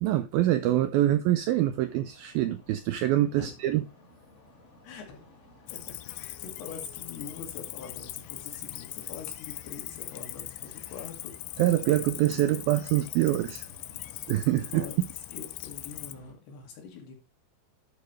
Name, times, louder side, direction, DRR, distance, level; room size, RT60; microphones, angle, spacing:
voice 1, 0.0-3.8 11.6-13.7 14.3-14.9, right 14 dB, 80° right, 2.2 m, -25 dB
sound 1, 1.3-16.3, left 2 dB, 30° left, 1.5 m, -55 dB
voice 2, 4.8-5.4 5.7-11.3 14.7-15.0 15.3-17.2, left 6 dB, 70° left, 4.3 m, -44 dB
Cricket, 5.7-16.1, left 16 dB, 90° left, 2.9 m, -41 dB
11.5 x 7.1 x 3.2 m
omnidirectional pair, 4.8 m